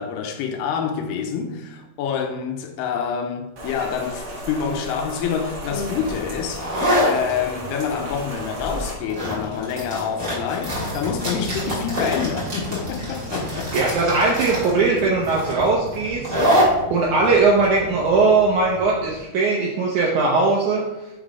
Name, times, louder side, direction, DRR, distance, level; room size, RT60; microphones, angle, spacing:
voice 1, 0.0-13.7, left 7 dB, 85° left, 2.7 m, -27 dB
Rain, 3.6-8.9, equal, 50° right, 1.9 m, -34 dB
sound 1, 5.7-19.1, equal, 30° right, 2.7 m, -26 dB
sound 2, 10.6-18.3, left 1 dB, 45° left, 1.8 m, -36 dB
voice 2, 13.7-16.3 16.9-20.8, right 3 dB, 85° right, 1.7 m, -19 dB
7.1 x 3.9 x 4.8 m
omnidirectional pair, 4.7 m